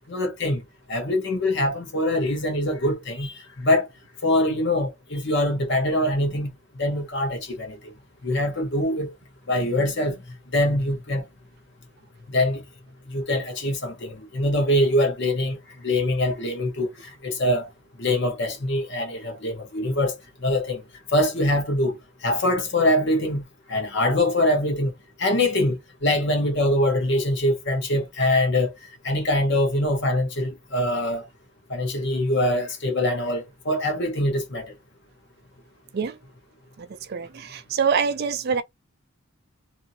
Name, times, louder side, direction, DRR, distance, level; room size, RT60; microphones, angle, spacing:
voice 1, 0.1-0.6 0.9-3.9 4.2-6.5 6.8-7.9 8.2-9.1 9.5-10.2 10.5-11.2 12.3-12.6 13.1-17.7 18.0-20.1 20.4-20.8 21.1-22.0 22.2-23.4 23.7-24.9 25.2-28.7 29.0-31.3 31.7-34.7, left 1 dB, 50° left, 0.9 m, -23 dB
voice 2, 36.8-38.6, right 6 dB, 45° right, 0.4 m, -25 dB
2.7 x 2.6 x 2.7 m
head